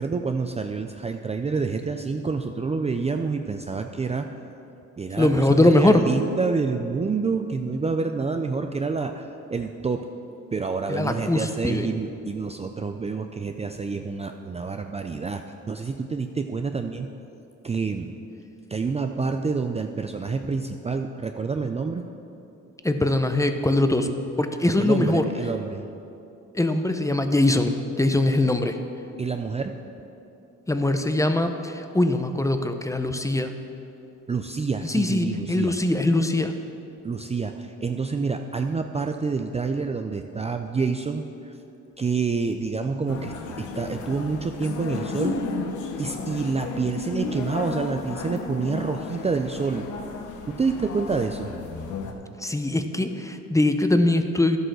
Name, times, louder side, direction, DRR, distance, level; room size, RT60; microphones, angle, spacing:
voice 1, 0.0-4.3 5.0-10.1 10.5-17.1 17.6-18.2 18.7-22.0 24.8-25.8 29.2-29.8 34.3-35.7 37.0-41.5 42.0-45.4 46.0-49.9 50.5-51.5, right 4 dB, 20° right, 6 dB, 0.5 m, -28 dB
voice 2, 5.2-6.0 10.9-11.9 22.8-24.1 24.4-25.2 26.5-28.8 30.7-33.6 34.8-36.5 52.4-54.6, left 2 dB, 10° left, 7 dB, 0.7 m, -22 dB
sound 1, 43.1-52.1, left 4 dB, 80° left, 1.1 m, -33 dB
11.0 x 8.1 x 6.3 m, 2.8 s
cardioid pair, 90°, 30 cm